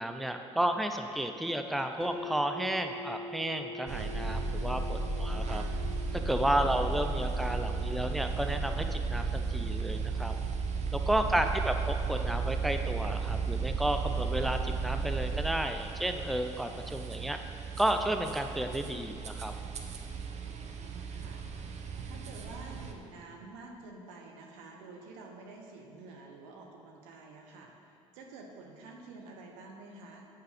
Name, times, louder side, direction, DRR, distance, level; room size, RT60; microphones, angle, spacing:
voice 1, 0.0-5.6 6.1-10.4 10.9-17.4 17.8-19.5, right 1 dB, ahead, 6 dB, 0.5 m, -32 dB
sound 1, 2.0-13.9, left 1 dB, 35° left, 1.6 m, -47 dB
sound 2, 3.9-22.9, right 4 dB, 45° right, 0.8 m, -34 dB
voice 2, 20.4-21.4 22.0-30.3, right 3 dB, 75° right, 1 dB, 1.0 m, -49 dB
7.9 x 5.6 x 5.0 m, 2.6 s
hypercardioid pair, 50°, 16 cm